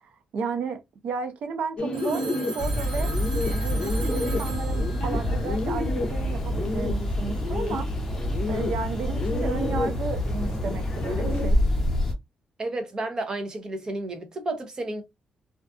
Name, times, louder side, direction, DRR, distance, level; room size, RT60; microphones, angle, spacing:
voice 1, 0.3-3.1 3.5-7.9 8.4-11.6, right 5 dB, 65° right, 0.6 m, -33 dB
Bird, 1.8-11.5, left 2 dB, 40° left, 0.6 m, -32 dB
Telephone, 1.9-6.2, right 4 dB, 50° right, 1.2 m, -40 dB
sound 1, 2.6-12.1, left 1 dB, 10° left, 0.9 m, -27 dB
voice 2, 12.6-15.0, right 2 dB, 30° right, 0.7 m, -31 dB
2.5 x 2.4 x 2.4 m
wide cardioid pair, 150°, 2 cm